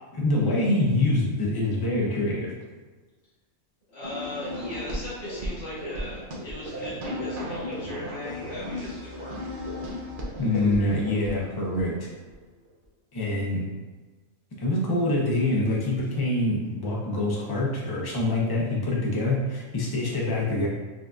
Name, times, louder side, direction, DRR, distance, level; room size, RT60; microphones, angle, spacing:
voice 1, 0.1-2.5 10.4-12.1 13.1-13.7 14.6-20.7, left 2 dB, 30° left, -3 dB, 0.4 m, -25 dB
voice 2, 3.9-9.5, left 1 dB, 50° left, -11 dB, 1.7 m, -38 dB
sound 1, 4.0-12.3, equal, 55° right, 0.6 m, -35 dB
5.0 x 2.5 x 2.3 m, 1.3 s
omnidirectional pair, 1.4 m